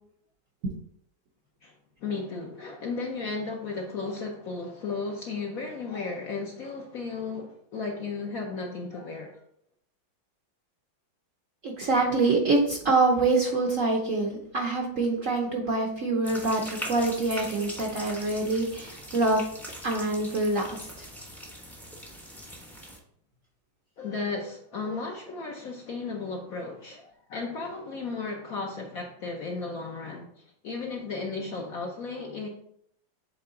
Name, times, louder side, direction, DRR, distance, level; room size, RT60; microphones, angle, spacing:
voice 1, 2.0-9.4 24.0-32.5, left 4 dB, 60° left, 0.9 m, -35 dB
voice 2, 11.6-19.5 19.8-20.8, right 3 dB, 60° right, 0.9 m, -25 dB
sound 1, 16.2-23.0, equal, ahead, 0.4 m, -41 dB
7.7 x 3.4 x 3.7 m
omnidirectional pair, 2.2 m